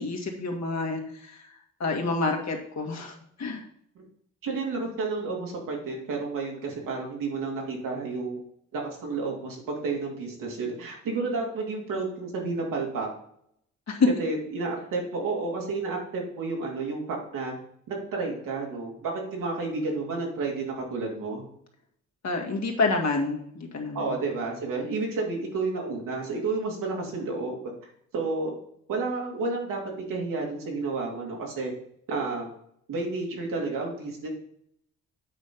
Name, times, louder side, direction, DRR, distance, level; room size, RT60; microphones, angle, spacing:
voice 1, 0.0-1.4 1.8-3.6 13.9-14.1 22.2-24.2, left 3 dB, 55° left, 2 dB, 2.0 m, -28 dB
voice 2, 4.4-8.4 8.7-13.1 14.2-17.5 17.9-21.4 23.9-27.7 28.1-28.5 28.9-29.8 30.1-31.7 32.1-32.5 32.9-34.3, right 3 dB, 75° right, -1 dB, 2.7 m, -31 dB
8.7 x 4.2 x 5.4 m, 0.69 s
supercardioid pair, 60°, 33 cm